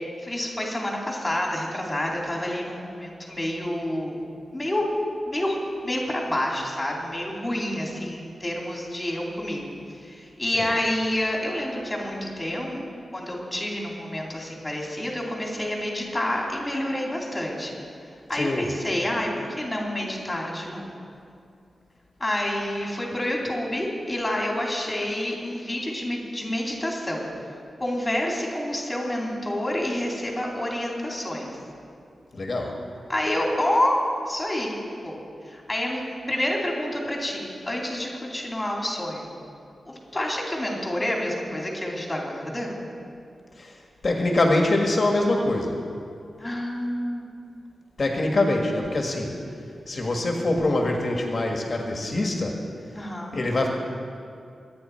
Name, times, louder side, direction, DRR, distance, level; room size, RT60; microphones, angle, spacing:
voice 1, 0.2-4.2 4.5-4.8 5.3-17.7 18.3-20.9 22.2-27.3 27.8-31.5 33.1-34.0 34.2-34.8 35.0-35.2 35.4-39.3 39.9-42.8 46.4-47.4 52.9-53.4, left 1 dB, 15° left, -1 dB, 2.6 m, -28 dB
voice 2, 18.3-18.7 32.3-32.8 43.6-43.8 44.0-45.8 48.0-49.3 49.9-52.6 53.3-53.7, left 2 dB, 35° left, 1 dB, 1.6 m, -24 dB
25.0 x 9.6 x 4.4 m, 2.4 s
wide cardioid pair, 160°, 0 cm